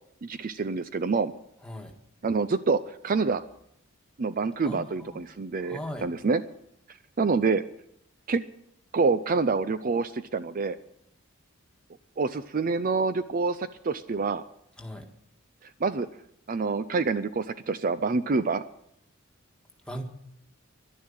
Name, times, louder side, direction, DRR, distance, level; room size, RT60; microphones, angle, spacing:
voice 1, 0.2-1.3 2.2-3.4 4.2-6.4 7.2-7.6 8.3-8.4 8.9-10.8 12.2-14.4 15.6-16.1 16.5-18.6, right 4 dB, 40° right, 13 dB, 0.5 m, -27 dB
voice 2, 1.6-1.9 4.6-5.2 5.7-6.1 14.8-15.1 19.9-20.0, equal, 5° left, 2 dB, 1.7 m, -38 dB
11.5 x 11.0 x 8.7 m, 0.74 s
head